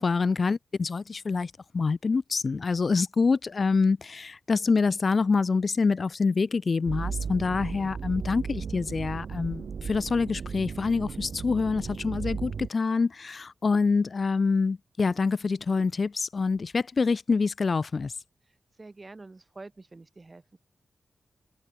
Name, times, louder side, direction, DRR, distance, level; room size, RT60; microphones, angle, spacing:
voice 1, 0.0-18.1, left 4 dB, 60° left, 0.3 m, -26 dB
sound 1, 6.9-12.7, right 6 dB, 75° right, 0.3 m, -35 dB
voice 2, 18.5-20.6, right 3 dB, 40° right, 6.7 m, -47 dB
cardioid pair, 50°, 0 cm